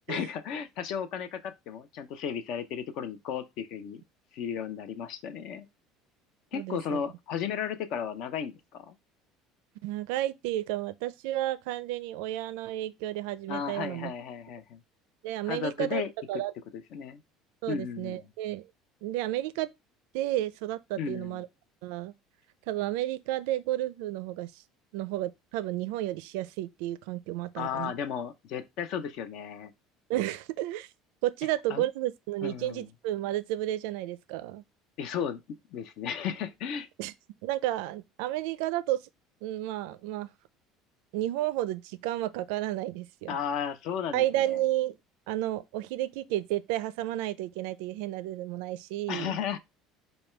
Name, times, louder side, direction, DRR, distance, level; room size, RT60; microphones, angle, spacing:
voice 1, 0.1-4.0 4.3-5.7 6.5-8.9 13.5-14.8 15.5-16.4 16.9-17.2 17.7-18.3 21.0-21.4 27.6-29.7 31.7-31.9 32.4-32.9 35.0-36.9 43.3-44.6 49.1-49.6, left 8 dB, 55° left, 0.7 m, -34 dB
voice 2, 6.5-7.0 9.8-14.1 15.2-16.0 16.3-16.5 17.6-18.7 19.0-19.7 20.1-21.5 21.8-22.1 22.7-24.5 24.9-27.9 30.1-30.9 31.2-34.6 37.0-37.1 37.4-39.0 39.4-40.3 41.1-43.4 44.1-44.9 45.3-49.4, right 14 dB, 85° right, 0.4 m, -32 dB
5.3 x 2.3 x 4.4 m
cardioid pair, 155°, 0 cm